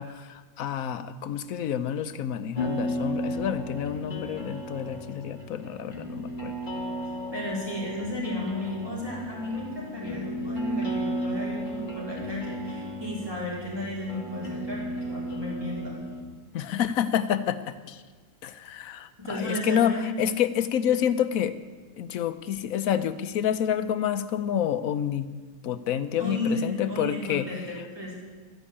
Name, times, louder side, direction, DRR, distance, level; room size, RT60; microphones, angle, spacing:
voice 1, 0.0-6.5 16.5-18.0 18.4-21.5 22.0-25.3 25.6-27.5, left 9 dB, 70° left, 11 dB, 1.2 m, -28 dB
sound 1, 2.6-16.2, equal, 35° left, 1.8 m, -34 dB
voice 2, 7.3-16.0 19.2-20.1 26.2-28.2, left 1 dB, 15° right, -5 dB, 4.6 m, -33 dB
12.5 x 9.9 x 8.6 m, 1.4 s
omnidirectional pair, 1.5 m